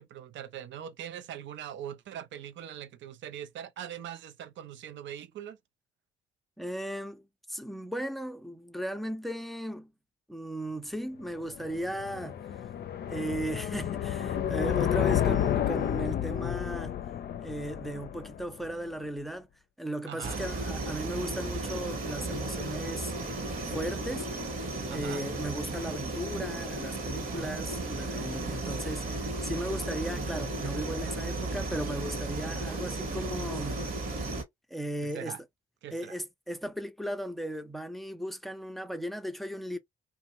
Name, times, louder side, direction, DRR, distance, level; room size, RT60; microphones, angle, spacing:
voice 1, 0.0-5.6 20.1-20.4 24.9-25.2 35.0-35.4 35.8-36.1, right 10 dB, 60° right, 0.6 m, -42 dB
voice 2, 6.6-9.9 10.3-12.4 13.1-17.0 17.4-19.5 19.8-23.4 23.7-24.3 24.9-33.8 34.7-35.4 35.9-39.8, right 1 dB, ahead, 0.6 m, -36 dB
sound 1, 11.4-18.7, left 10 dB, 50° left, 0.5 m, -31 dB
sound 2, 20.2-34.4, right 2 dB, 45° right, 1.2 m, -34 dB
2.4 x 2.2 x 2.9 m
hypercardioid pair, 55°, 21 cm